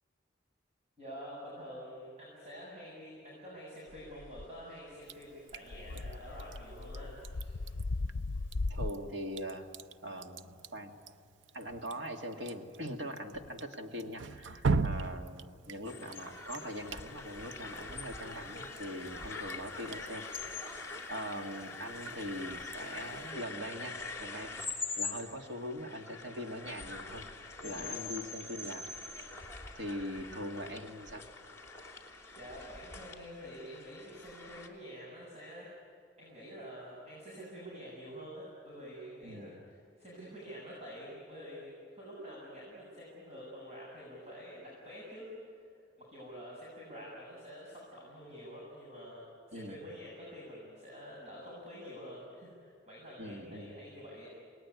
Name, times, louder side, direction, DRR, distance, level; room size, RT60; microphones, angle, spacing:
voice 1, 1.0-7.6 27.6-28.0 32.3-35.7 36.2-45.3 46.0-54.3, equal, 35° right, -5 dB, 7.4 m, -48 dB
sound 1, 3.9-4.5 5.5-8.9, left 3 dB, 85° left, 0.6 m, -37 dB
Drip, 5.0-23.3, right 4 dB, 85° right, 0.7 m, -42 dB
voice 2, 8.7-9.7 10.0-10.9 11.5-20.7 21.1-24.6 25.0-27.3 27.6-28.9 29.7-31.3 39.2-39.6 49.5-49.8 53.2-53.8, equal, 70° right, 4 dB, 2.4 m, -42 dB
sound 2, 15.9-34.7, left 3 dB, 15° left, 3.2 m, -44 dB
28.5 x 20.0 x 9.7 m, 2.5 s
head